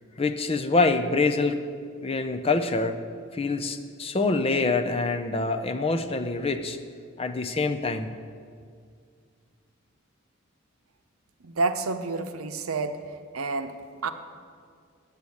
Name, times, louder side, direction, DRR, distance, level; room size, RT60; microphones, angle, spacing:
voice 1, 0.2-1.6 2.0-3.0 3.3-6.8 7.2-8.1, left 3 dB, 25° left, 7 dB, 0.5 m, -25 dB
voice 2, 11.4-13.0 13.3-13.7 14.0-14.1, right 3 dB, 80° right, 8 dB, 0.7 m, -28 dB
8.3 x 8.0 x 8.5 m, 2.1 s
head